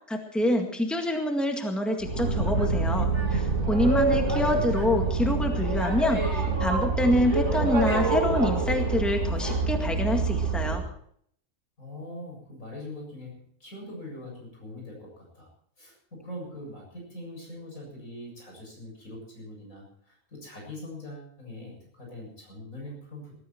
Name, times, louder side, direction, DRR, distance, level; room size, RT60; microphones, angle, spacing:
voice 1, 0.1-10.8, left 1 dB, ahead, 3 dB, 1.9 m, -26 dB
Boat Water vehicle, 2.0-10.8, right 3 dB, 65° right, 4.7 m, -26 dB
voice 2, 3.8-4.3 11.8-15.5 15.8-23.4, left 1 dB, 85° left, -1 dB, 7.8 m, -42 dB
19.5 x 13.5 x 4.5 m, 0.63 s
omnidirectional pair, 1.4 m